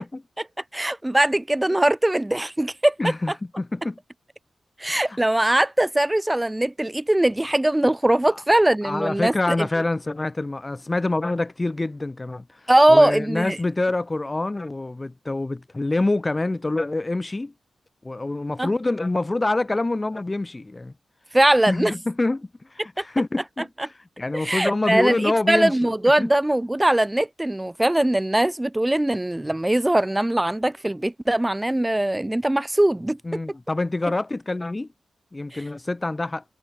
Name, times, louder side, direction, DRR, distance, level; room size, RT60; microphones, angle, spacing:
voice 1, 0.7-2.9 4.8-9.7 12.7-13.6 18.6-18.7 21.3-21.9 23.0-23.1 23.8-23.9 24.3-33.2 35.5-35.6, right 1 dB, 15° right, 1.3 m, -21 dB
voice 2, 3.0-4.0 4.9-5.2 8.3-8.4 8.8-12.5 12.9-17.5 18.0-20.9 21.7-22.5 22.8-25.9 26.2-26.3 33.2-34.9 35.3-36.4, left 2 dB, 25° left, 2.3 m, -26 dB
cardioid pair, 60°, 0 cm